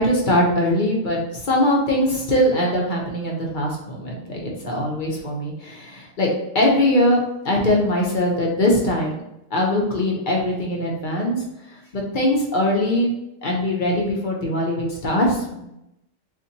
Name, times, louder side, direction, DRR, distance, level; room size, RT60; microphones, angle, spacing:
voice 1, 0.0-6.3 6.5-7.2 7.4-9.2 9.5-13.1 13.4-15.6, left 1 dB, 45° left, -1 dB, 0.7 m, -21 dB
4.0 x 2.5 x 2.7 m, 0.84 s
omnidirectional pair, 1.4 m